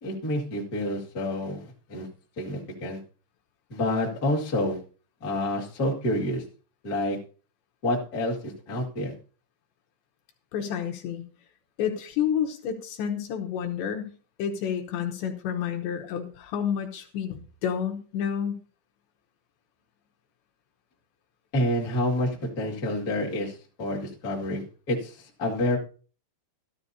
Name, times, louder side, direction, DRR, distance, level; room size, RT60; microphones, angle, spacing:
voice 1, 0.0-2.1 2.4-3.0 3.7-4.8 5.2-6.4 6.8-7.2 7.8-9.1 21.5-25.8, left 1 dB, 45° left, -3 dB, 1.1 m, -28 dB
voice 2, 10.5-11.2 11.8-14.1 14.4-18.6, left 8 dB, 75° left, 5 dB, 2.9 m, -30 dB
13.5 x 13.0 x 2.7 m, 0.38 s
omnidirectional pair, 5.7 m